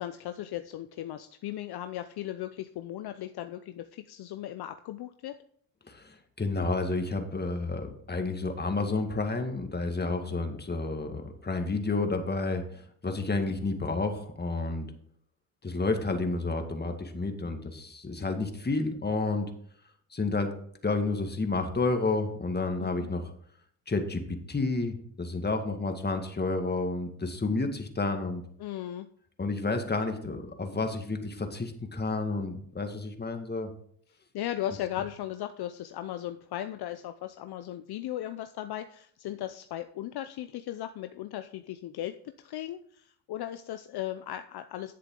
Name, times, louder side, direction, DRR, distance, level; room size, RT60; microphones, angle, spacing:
voice 1, 0.0-5.4 10.1-10.3 22.8-23.1 28.6-29.1 34.3-44.9, left 12 dB, 60° left, 9 dB, 0.7 m, -37 dB
voice 2, 5.8-14.9 15.6-19.5 20.1-20.5 20.8-23.3 23.9-28.5 29.4-33.7, left 3 dB, 20° left, 5 dB, 1.9 m, -30 dB
10.5 x 7.7 x 3.8 m, 0.62 s
supercardioid pair, 70°, 44 cm